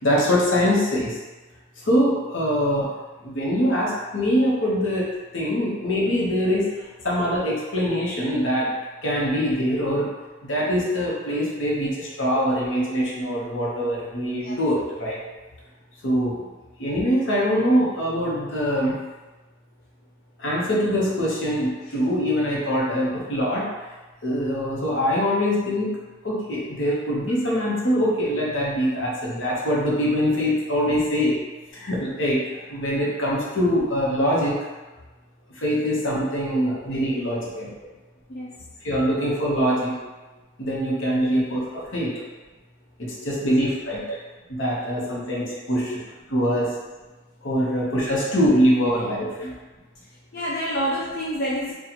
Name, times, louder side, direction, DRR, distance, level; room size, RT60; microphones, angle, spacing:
voice 1, 0.0-1.2 1.8-2.9 3.2-5.1 5.3-8.7 9.0-10.1 10.4-15.2 16.0-16.5 16.8-19.0 20.4-23.7 24.2-26.0 26.2-31.4 31.7-32.4 32.7-34.5 35.5-37.7 38.8-39.9 40.6-42.1 43.0-44.0 44.5-46.0 46.3-46.7 47.4-49.5, equal, 65° left, -5 dB, 0.9 m, -23 dB
voice 2, 50.3-51.7, equal, 45° left, -6 dB, 0.4 m, -28 dB
4.1 x 2.4 x 2.9 m, 1.2 s
head